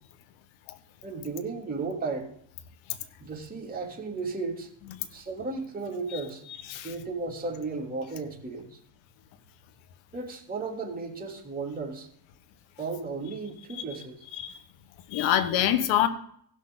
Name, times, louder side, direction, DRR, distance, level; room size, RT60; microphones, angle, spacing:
voice 1, 1.0-2.3 3.2-4.7 5.1-6.4 6.7-8.8 10.1-12.1 12.8-14.2, right 4 dB, 20° right, -2 dB, 3.0 m, -34 dB
voice 2, 15.1-16.1, left 11 dB, 75° left, 10 dB, 1.3 m, -25 dB
16.5 x 6.6 x 3.9 m, 0.66 s
supercardioid pair, 85°, 47 cm